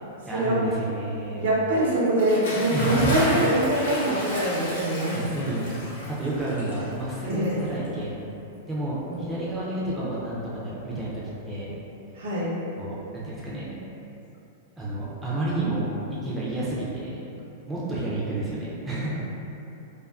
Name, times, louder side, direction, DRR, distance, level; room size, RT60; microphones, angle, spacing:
voice 1, 0.2-1.5 2.7-3.3 5.1-5.8 6.1-8.1 8.7-11.7 12.8-13.7 14.8-17.2 17.7-19.1, right 2 dB, 5° right, -9 dB, 0.4 m, -30 dB
voice 2, 1.4-5.3 7.3-7.6 9.1-9.3 12.2-12.5, right 1 dB, 80° right, -6 dB, 0.6 m, -24 dB
Bathtub (filling or washing) / Splash splatter, 2.1-8.0, left 1 dB, 80° left, 0.9 m, -32 dB
2.5 x 2.4 x 2.3 m, 2.9 s
supercardioid pair, 165°, 0 cm